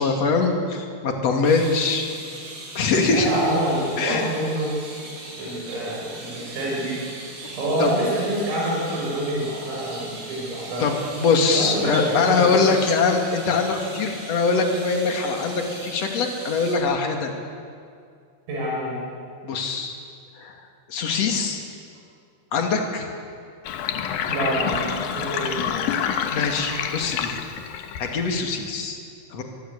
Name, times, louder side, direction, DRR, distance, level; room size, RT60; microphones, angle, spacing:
voice 1, 0.0-2.1 2.7-3.3 4.0-4.3 7.4-7.9 10.8-10.9 11.2-17.3 19.4-20.0 20.4-20.5 20.9-21.6 22.5-23.1 26.3-27.3 28.0-29.0 29.3-29.4, left 4 dB, 40° left, 3 dB, 2.8 m, -22 dB
Flocks of Birds, 1.4-16.8, right 2 dB, 60° right, 7.9 m, -39 dB
voice 2, 3.0-4.7 5.4-7.0 7.6-10.8 11.5-12.6 18.5-19.0 24.3-25.8, right 1 dB, 85° right, -4 dB, 8.6 m, -26 dB
Sink (filling or washing), 23.6-28.6, left 8 dB, 75° left, 2.2 m, -28 dB
24.0 x 24.0 x 8.4 m, 2.3 s
omnidirectional pair, 5.8 m